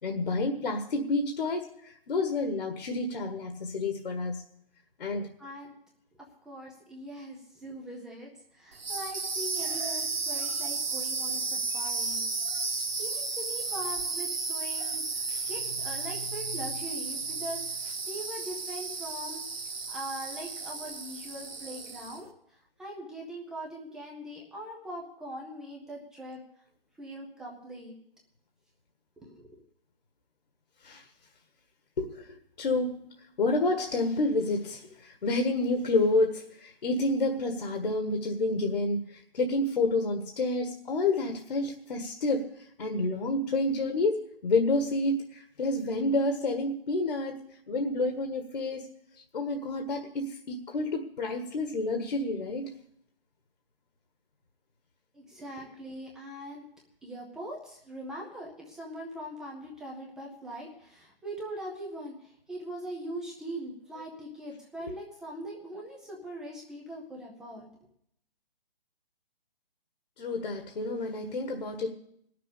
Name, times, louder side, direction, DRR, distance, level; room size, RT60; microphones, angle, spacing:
voice 1, 0.0-4.4 5.0-5.3 15.3-15.5 30.8-31.0 32.0-33.1 33.4-47.4 47.7-48.9 49.3-52.7 70.2-71.9, left 2 dB, 60° left, 5 dB, 1.7 m, -29 dB
voice 2, 5.4-5.7 6.4-12.3 12.5-12.6 13.0-26.4 27.0-27.9 29.2-29.5 55.1-56.6 57.0-67.7, equal, ahead, -2 dB, 0.5 m, -41 dB
sound 1, 8.7-22.3, right 4 dB, 90° right, 2.0 m, -33 dB
18.5 x 6.8 x 8.3 m, 0.70 s
hypercardioid pair, 150°, 29 cm